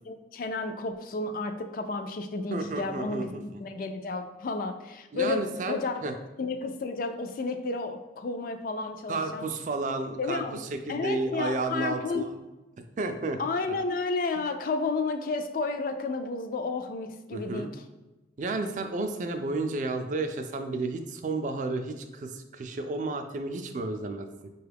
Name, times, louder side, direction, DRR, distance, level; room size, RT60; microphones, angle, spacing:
voice 1, 0.1-3.3 3.6-6.0 6.4-9.4 10.2-12.2 13.4-17.8, left 3 dB, 45° left, 7 dB, 0.3 m, -32 dB
voice 2, 2.5-3.4 5.1-6.1 9.1-12.3 13.0-13.4 17.3-17.7 18.4-24.5, right 3 dB, 40° right, 7 dB, 0.3 m, -32 dB
5.4 x 2.3 x 3.3 m, 1.1 s
head